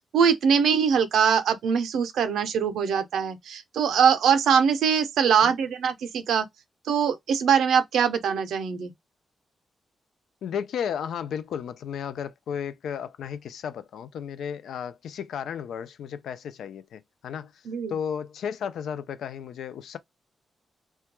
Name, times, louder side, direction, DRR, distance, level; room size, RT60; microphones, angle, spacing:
voice 1, 0.1-6.5 6.9-8.9 17.7-17.9, right 7 dB, 85° right, 0.4 m, -22 dB
voice 2, 10.4-17.5 17.9-20.0, left 8 dB, 85° left, 0.3 m, -34 dB
2.2 x 2.2 x 2.9 m
cardioid pair, 80°, 0 cm